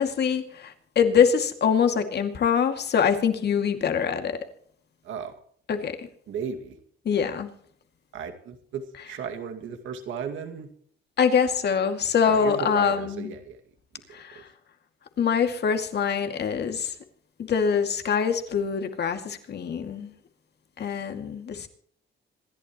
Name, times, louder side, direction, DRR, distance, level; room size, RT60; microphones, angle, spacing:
voice 1, 0.0-4.4 5.7-5.9 7.0-7.5 11.2-13.3 14.1-14.5 15.2-17.0 17.4-20.1 20.8-21.7, left 7 dB, 55° left, 2.4 m, -24 dB
voice 2, 6.3-6.8 8.1-10.7 12.2-13.6 14.1-14.4, right 6 dB, 80° right, 2.2 m, -35 dB
26.5 x 11.0 x 3.1 m
cardioid pair, 90°, 20 cm